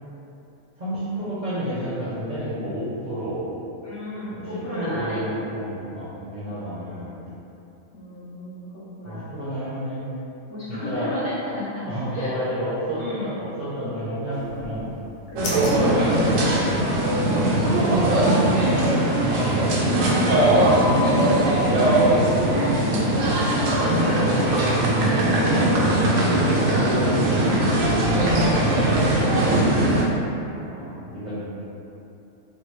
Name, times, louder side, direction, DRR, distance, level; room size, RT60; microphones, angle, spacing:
voice 1, 0.8-3.4 4.3-4.5 4.8-7.1 9.0-10.1 10.7-11.2 11.9-14.9 15.7-17.0 17.6-18.8 21.5-22.2 24.3-24.5 25.4-25.9 26.2-27.5 27.9-29.3 30.6-31.4, equal, 45° right, -11 dB, 0.7 m, -30 dB
voice 2, 3.8-5.3 6.5-7.2 7.9-9.3 10.5-12.3 13.0-13.4 15.3-15.9 19.2-21.7 22.8-23.3 23.7-24.3 25.0-25.3 27.6-27.7 29.2-29.6, left 1 dB, 50° left, -10 dB, 1.0 m, -34 dB
sound 1, 14.3-17.1, left 2 dB, 80° left, 1.1 m, -38 dB
sound 2, 15.4-30.0, right 1 dB, 80° right, 1.0 m, -20 dB
3.6 x 2.3 x 3.1 m, 2.8 s
omnidirectional pair, 1.4 m